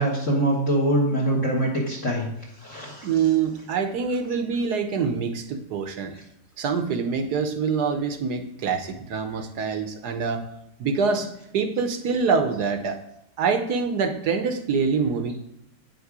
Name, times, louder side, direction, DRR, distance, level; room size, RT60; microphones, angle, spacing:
voice 1, 0.0-2.3 2.6-3.1, right 1 dB, 45° left, -3 dB, 1.8 m, -23 dB
voice 2, 3.0-6.1 6.6-10.5 10.8-11.3 11.5-13.0 13.4-15.3, right 5 dB, 65° right, 8 dB, 1.3 m, -25 dB
8.8 x 6.5 x 4.8 m, 0.76 s
omnidirectional pair, 2.0 m